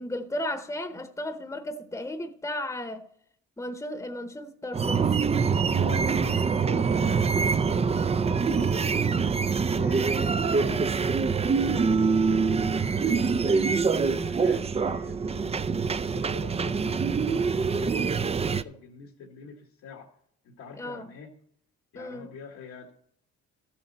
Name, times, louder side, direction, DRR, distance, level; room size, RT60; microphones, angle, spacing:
voice 1, 0.0-3.0 3.6-5.1 20.8-21.1 21.9-22.3, left 1 dB, 10° left, 0.9 m, -34 dB
sound 1, 4.7-18.6, right 5 dB, 20° right, 0.4 m, -25 dB
voice 2, 5.8-9.0 9.8-15.6 16.0-20.1 20.4-21.3 21.9-22.9, left 5 dB, 75° left, 1.7 m, -45 dB
13.5 x 7.5 x 4.2 m
cardioid pair, 90°, 30 cm